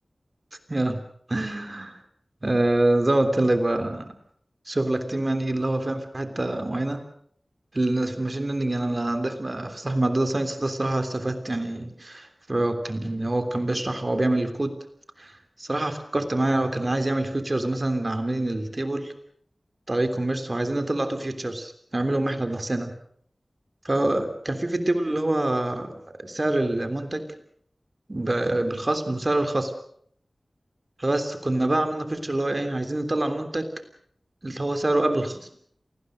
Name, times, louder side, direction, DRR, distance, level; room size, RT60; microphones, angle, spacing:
voice 1, 0.7-1.0 1.3-1.9 2.4-4.1 4.7-7.0 7.7-14.7 15.2-15.3 15.6-19.1 19.9-22.9 23.8-27.2 28.1-29.7 31.0-33.6 34.4-35.5, right 1 dB, 35° right, 8 dB, 3.4 m, -25 dB
27.5 x 20.0 x 6.5 m, 0.62 s
wide cardioid pair, 75°, 0 cm